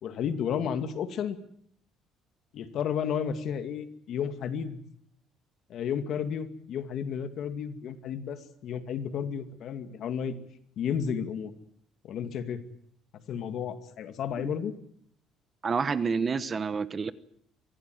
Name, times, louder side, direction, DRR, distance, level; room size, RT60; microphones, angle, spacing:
voice 1, 0.0-1.4 2.5-4.8 5.7-10.4 10.8-11.5 12.0-12.6 13.1-14.7, left 7 dB, 55° left, 9 dB, 2.4 m, -32 dB
voice 2, 15.6-17.1, right 5 dB, 30° right, 14 dB, 1.1 m, -28 dB
24.5 x 16.5 x 9.5 m, 0.67 s
cardioid pair, 140°, 0 cm